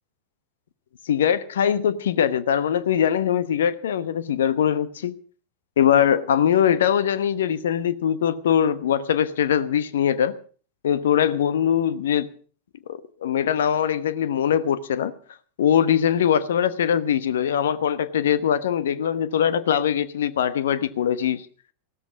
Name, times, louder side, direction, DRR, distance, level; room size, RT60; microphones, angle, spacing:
voice 1, 1.1-5.1 5.8-10.4 10.8-12.3 12.9-15.1 15.6-21.4, left 9 dB, 60° left, 1.0 m, -22 dB
16.5 x 13.5 x 5.1 m
figure-of-eight pair, 90°, 0 cm